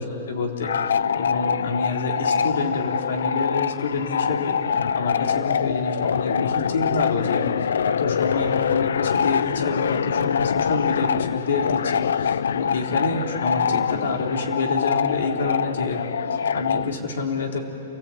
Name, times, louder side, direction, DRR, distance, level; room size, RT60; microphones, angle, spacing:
voice 1, 0.0-16.0 16.3-17.6, left 3 dB, 70° left, 1 dB, 3.8 m, -28 dB
sound 1, 0.6-16.9, left 7 dB, 90° left, 0.5 m, -24 dB
28.5 x 18.0 x 8.8 m, 2.9 s
hypercardioid pair, 165°, 0 cm